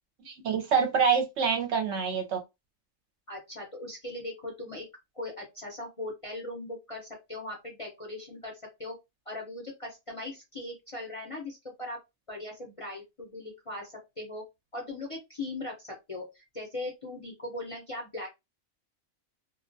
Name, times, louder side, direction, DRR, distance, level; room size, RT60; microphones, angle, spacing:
voice 1, 0.2-2.4, right 6 dB, 65° right, 0.8 m, -26 dB
voice 2, 3.3-4.9 5.1-8.5 8.8-8.9 9.3-12.0 12.3-14.4 14.7-18.3, left 2 dB, 35° left, 0.5 m, -39 dB
2.4 x 2.1 x 2.5 m
omnidirectional pair, 1.4 m